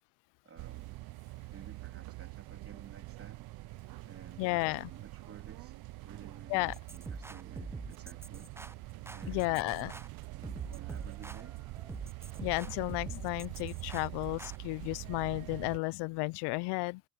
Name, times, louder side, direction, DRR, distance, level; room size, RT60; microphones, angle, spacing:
voice 1, 0.4-1.0 1.5-3.4 4.0-5.8 6.0-8.5 9.1-9.9 10.3-11.6, right 6 dB, 30° right, 3.2 m, -54 dB
sound 1, 0.6-15.8, right 21 dB, 55° right, 0.6 m, -45 dB
voice 2, 4.4-4.9 6.5-6.7 9.3-9.9 12.4-17.0, left 26 dB, 70° left, 0.6 m, -33 dB
sound 2, 6.7-14.6, right 2 dB, 5° right, 0.5 m, -46 dB
supercardioid pair, 100°, 43 cm